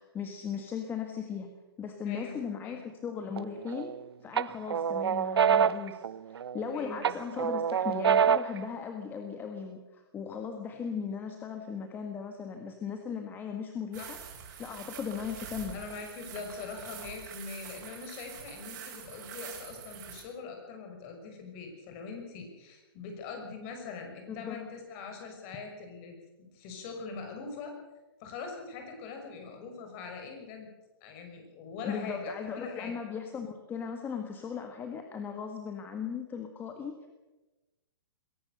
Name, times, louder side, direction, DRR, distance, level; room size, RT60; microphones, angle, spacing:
voice 1, 0.0-1.5 1.8-3.9 4.2-14.2 14.6-15.8 24.3-24.6 31.8-37.1, left 6 dB, 15° left, 5 dB, 1.6 m, -37 dB
sound 1, 3.4-3.9 4.4-6.6 7.0-8.6, right 8 dB, 85° right, 0.6 m, -26 dB
voice 2, 6.7-7.1 14.0-14.1 15.7-27.7 28.2-30.7 31.0-32.9, left 4 dB, 35° left, 4 dB, 6.2 m, -42 dB
sound 2, 13.9-20.2, right 8 dB, 50° right, 6.4 m, -45 dB
22.0 x 17.5 x 6.8 m, 1.1 s
hypercardioid pair, 150°, 13 cm